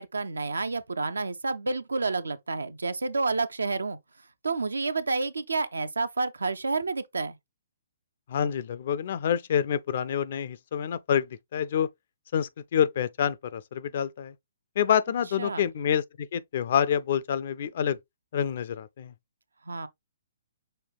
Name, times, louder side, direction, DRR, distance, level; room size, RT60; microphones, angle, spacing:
voice 1, 0.0-4.0 4.4-7.4 15.4-15.7 19.7-19.9, right 3 dB, 75° right, 0.6 m, -29 dB
voice 2, 8.3-11.3 11.5-11.9 12.3-14.3 14.8-18.0 18.3-19.1, left 8 dB, 50° left, 0.5 m, -27 dB
6.5 x 2.4 x 3.4 m
figure-of-eight pair, 130°, 0 cm